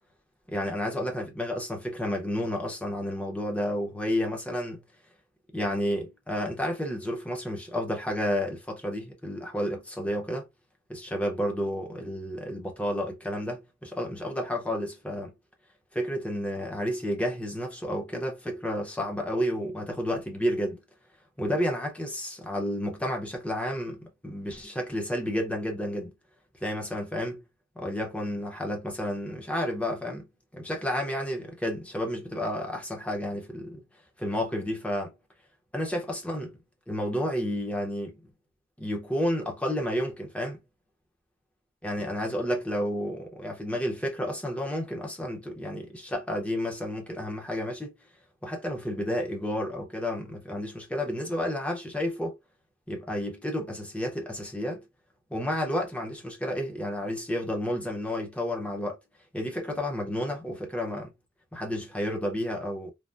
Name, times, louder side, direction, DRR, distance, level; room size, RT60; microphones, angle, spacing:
voice 1, 0.5-4.8 5.5-10.5 10.9-15.3 15.9-20.8 21.4-26.2 26.6-27.4 27.8-30.3 30.5-33.8 34.2-35.1 35.7-36.5 36.9-38.2 38.8-40.6 41.8-47.9 48.4-52.3 52.9-54.9 55.3-59.0 59.3-61.1 61.5-62.9, equal, 5° left, 0.7 m, -31 dB
3.3 x 2.1 x 2.5 m
head